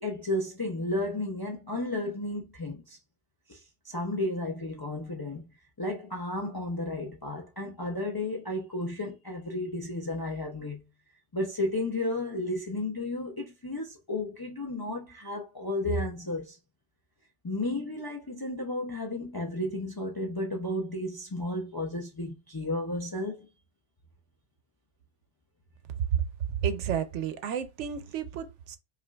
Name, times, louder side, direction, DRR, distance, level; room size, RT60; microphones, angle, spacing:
voice 1, 0.0-3.0 3.5-3.6 3.8-5.5 5.8-10.8 11.3-16.6 17.4-23.3, left 1 dB, 35° left, 0.3 m, -33 dB
voice 2, 26.6-28.8, right 8 dB, 85° right, 0.9 m, -31 dB
5.1 x 2.4 x 2.2 m
omnidirectional pair, 1.2 m